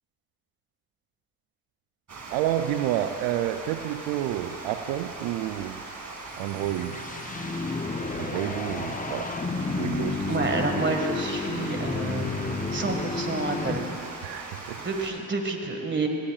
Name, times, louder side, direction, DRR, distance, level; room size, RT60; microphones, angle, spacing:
Water, 2.1-15.1, right 3 dB, 40° right, 2.3 m, -40 dB
voice 1, 2.3-5.8 6.4-7.0 8.2-9.3 9.7-10.4 14.2-14.8, right 12 dB, 75° right, 8 dB, 0.6 m, -29 dB
sound 1, 6.3-14.2, left 3 dB, 20° left, 0.9 m, -31 dB
voice 2, 10.3-12.3 12.7-13.8 14.8-16.1, right 3 dB, 25° right, 4 dB, 1.9 m, -29 dB
19.0 x 15.5 x 2.5 m, 2.4 s
hypercardioid pair, 60°, 45 cm